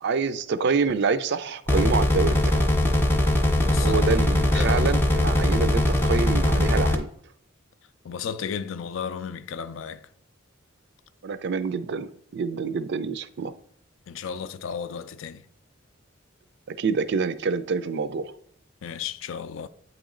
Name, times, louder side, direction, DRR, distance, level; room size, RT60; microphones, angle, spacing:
voice 1, 0.0-2.7 3.8-7.1 11.2-13.5 16.7-18.3, right 5 dB, 60° right, 0.4 m, -27 dB
sound 1, 1.7-7.0, left 1 dB, 10° left, 0.6 m, -21 dB
voice 2, 3.6-4.1 4.5-4.9 8.0-10.0 14.1-15.4 18.8-19.7, left 7 dB, 70° left, 0.4 m, -33 dB
8.3 x 3.0 x 3.7 m
head